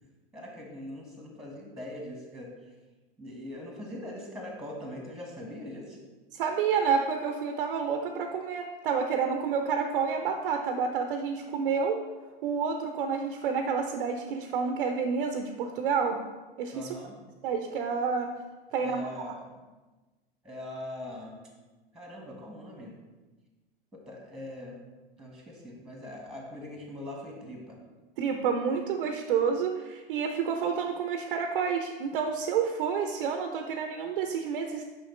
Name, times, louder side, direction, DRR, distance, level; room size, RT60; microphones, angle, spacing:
voice 1, 0.3-2.5 3.2-6.0 16.7-17.1 18.8-19.5 20.4-21.4 21.9-22.9 23.9-24.9 25.2-27.8, left 1 dB, ahead, 0 dB, 1.3 m, -41 dB
voice 2, 6.3-12.0 12.4-16.2 16.6-17.0 17.4-18.3 18.7-19.3 28.2-34.8, right 6 dB, 60° right, 5 dB, 0.6 m, -29 dB
6.4 x 5.5 x 3.2 m, 1.2 s
figure-of-eight pair, 95°, 30 cm